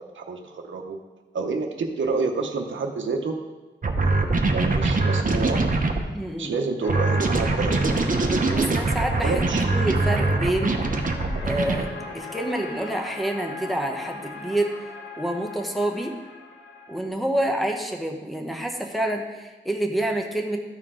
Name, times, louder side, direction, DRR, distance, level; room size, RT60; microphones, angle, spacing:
voice 1, 0.1-1.0 1.3-3.3 4.0-4.2 4.5-5.7 6.0-8.7 9.2-9.6, right 4 dB, 70° right, 2 dB, 0.8 m, -29 dB
sound 1, 3.8-6.0 6.9-11.8, right 3 dB, 40° right, 0.8 m, -23 dB
voice 2, 6.1-6.5 8.6-9.4 9.7-10.8 11.4-11.9 12.1-14.7 15.2-16.2 16.9-20.6, right 1 dB, ahead, 3 dB, 1.0 m, -27 dB
sound 2, 6.8-17.1, left 3 dB, 80° left, 1.3 m, -39 dB
13.5 x 4.5 x 3.7 m, 1.2 s
wide cardioid pair, 85°, 20 cm